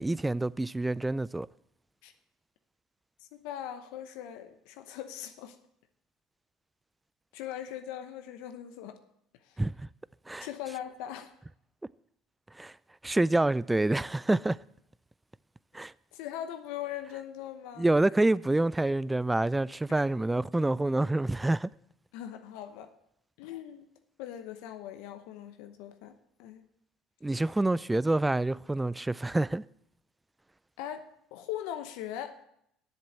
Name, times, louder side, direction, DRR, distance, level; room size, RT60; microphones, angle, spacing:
voice 1, 0.0-1.5 9.6-9.7 10.3-10.5 12.6-12.7 13.0-14.6 15.7-15.9 17.8-21.7 27.2-29.6, right 2 dB, 10° right, 0.3 m, -27 dB
voice 2, 3.2-5.6 7.3-9.0 9.5-9.6 10.4-11.3 16.1-17.9 19.9-20.0 22.1-22.9 23.4-23.9 24.2-26.1 26.4-26.6 30.8-32.4, left 11 dB, 75° left, 0.9 m, -40 dB
7.7 x 7.4 x 8.3 m
supercardioid pair, 85°, 0 cm